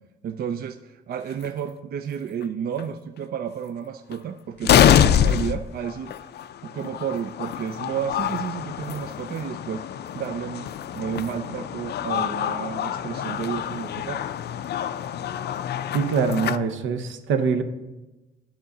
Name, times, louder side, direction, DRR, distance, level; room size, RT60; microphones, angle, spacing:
voice 1, 0.2-6.1 6.6-9.8 10.1-10.7 10.9-14.3, right 8 dB, 50° right, 8 dB, 0.4 m, -31 dB
sound 1, 1.3-1.5 2.4-2.5 2.8-2.9 4.1-4.2 4.6-16.6, left 10 dB, 55° left, 0.4 m, -25 dB
voice 2, 15.9-17.6, right 5 dB, 75° right, 8 dB, 0.8 m, -23 dB
9.4 x 3.8 x 6.6 m, 1.1 s
cardioid pair, 90°, 20 cm